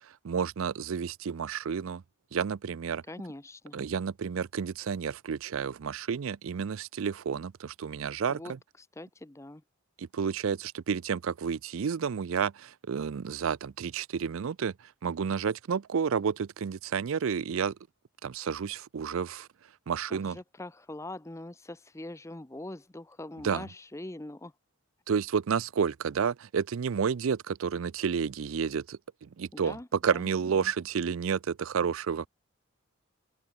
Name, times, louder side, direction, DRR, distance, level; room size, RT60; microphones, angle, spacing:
voice 1, 0.2-2.0 2.3-3.0 3.7-8.4 10.0-14.7 15.0-17.7 18.2-19.5 19.9-20.4 23.4-23.7 25.1-29.8 30.0-32.3, right 6 dB, 70° right, 0.4 m, -30 dB
voice 2, 3.1-3.8 8.3-8.5 8.8-9.6 20.1-24.5 29.5-30.7, left 1 dB, 15° left, 0.6 m, -43 dB
open air
head